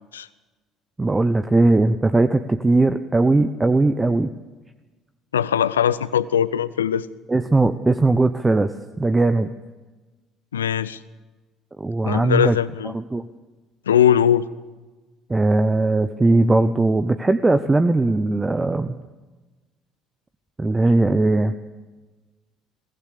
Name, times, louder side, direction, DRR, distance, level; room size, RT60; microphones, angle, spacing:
voice 1, 1.0-4.3 7.3-9.5 11.8-12.6 12.9-13.2 15.3-18.9 20.6-21.5, right 2 dB, 15° right, 11 dB, 0.9 m, -19 dB
voice 2, 5.3-7.1 10.5-11.0 12.0-12.9 13.9-14.5, left 9 dB, 80° left, 17 dB, 0.6 m, -20 dB
22.0 x 18.0 x 6.9 m, 1.2 s
figure-of-eight pair, 55°, 0 cm